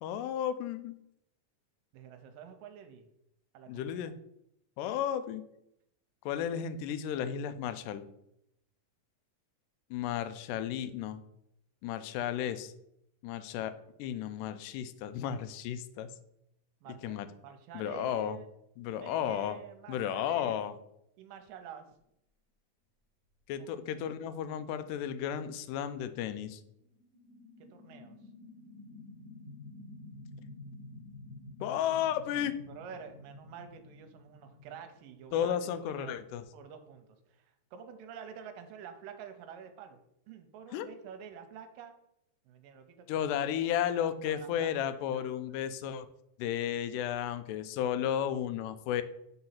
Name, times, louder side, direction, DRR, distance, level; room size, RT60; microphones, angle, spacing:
voice 1, 0.0-1.0 3.7-4.1 4.8-5.4 6.3-8.0 9.9-11.2 11.8-12.7 13.2-13.7 14.0-16.1 17.0-17.3 17.7-18.4 18.8-19.6 19.9-20.7 23.5-26.6 31.6-32.5 35.3-36.4 40.7-40.9 43.1-46.1 46.4-49.0, left 9 dB, 80° left, 11 dB, 2.0 m, -33 dB
voice 2, 1.9-3.1 3.5-4.1 16.8-17.0 17.4-18.5 18.9-20.6 21.2-21.9 23.6-23.7 27.7-28.2 32.4-36.1 36.5-40.0 40.3-41.9 42.5-43.2 44.3-44.7 45.1-45.3, right 7 dB, 85° right, 7 dB, 2.3 m, -48 dB
sound 1, 21.5-21.6 26.8-35.5, left 2 dB, 20° left, 0.6 m, -50 dB
5.2 x 4.0 x 5.7 m, 0.79 s
omnidirectional pair, 4.0 m